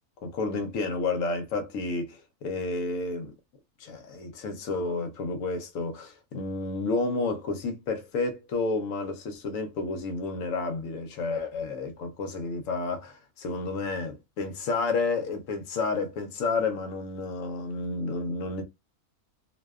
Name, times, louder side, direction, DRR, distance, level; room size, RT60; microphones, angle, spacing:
voice 1, 0.2-3.3 3.8-18.6, left 3 dB, 70° left, 0.9 m, -31 dB
2.6 x 2.1 x 2.2 m
omnidirectional pair, 1.6 m